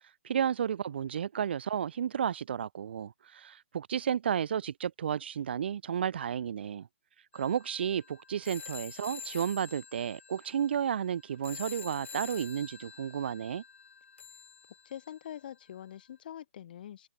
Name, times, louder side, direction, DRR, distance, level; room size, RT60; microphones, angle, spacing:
voice 1, 0.2-6.9 7.3-13.6, right 8 dB, 55° right, 0.4 m, -32 dB
sound 1, 7.3-15.4, left 6 dB, 70° left, 6.5 m, -47 dB
voice 2, 14.8-17.1, left 10 dB, 45° left, 1.5 m, -44 dB
hypercardioid pair, 155°, 7 cm